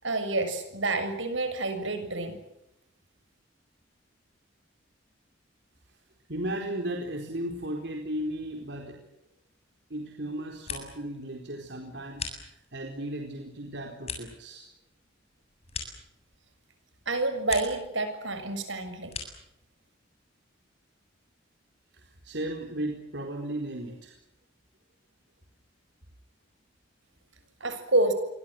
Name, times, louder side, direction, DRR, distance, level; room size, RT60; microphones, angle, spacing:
voice 1, 0.0-2.4 17.1-19.2 27.6-28.1, right 2 dB, 75° right, 9 dB, 6.9 m, -28 dB
voice 2, 6.3-9.1 9.9-14.7 21.9-24.1, right 1 dB, 60° right, 2 dB, 4.4 m, -35 dB
sound 1, 10.3-11.2 11.5-12.9 13.4-16.6 17.0-17.9 18.2-19.5, left 5 dB, 30° left, 7.3 m, -41 dB
29.0 x 24.0 x 7.9 m, 0.85 s
head